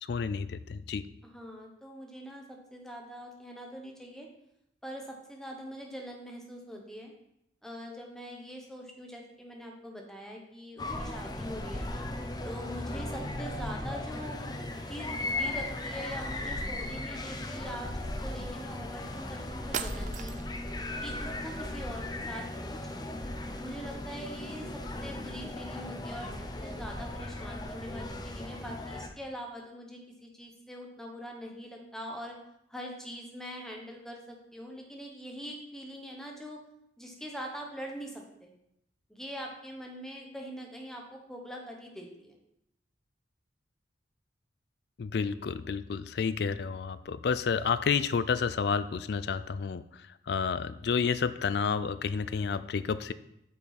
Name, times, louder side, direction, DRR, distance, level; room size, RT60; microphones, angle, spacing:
voice 1, 0.0-1.0 45.0-53.1, left 5 dB, 60° left, 14 dB, 0.4 m, -30 dB
voice 2, 1.2-4.3 4.8-7.1 7.6-11.9 12.4-20.5 21.0-23.1 23.6-24.7 25.0-26.4 26.6-32.4 32.7-36.6 37.0-38.5 39.1-42.4, equal, 5° left, 0 dB, 1.1 m, -43 dB
sound 1, 10.8-29.1, left 1 dB, 20° left, 0.6 m, -37 dB
sound 2, 19.7-20.7, right 7 dB, 40° right, 0.4 m, -37 dB
8.4 x 5.6 x 4.1 m, 0.79 s
head